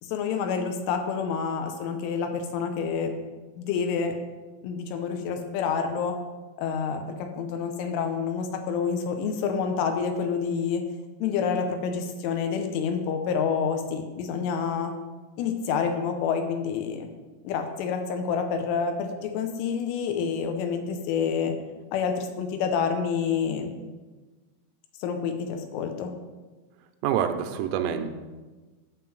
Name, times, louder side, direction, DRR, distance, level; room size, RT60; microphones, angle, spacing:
voice 1, 0.0-3.2 3.6-4.2 4.6-6.2 6.6-10.9 11.2-15.0 15.4-17.1 17.4-21.6 21.9-23.7 25.0-26.2, left 6 dB, 85° left, 6 dB, 3.1 m, -28 dB
voice 2, 27.0-28.1, right 9 dB, 90° right, 8 dB, 3.3 m, -26 dB
11.0 x 3.7 x 7.6 m, 1.3 s
omnidirectional pair, 5.9 m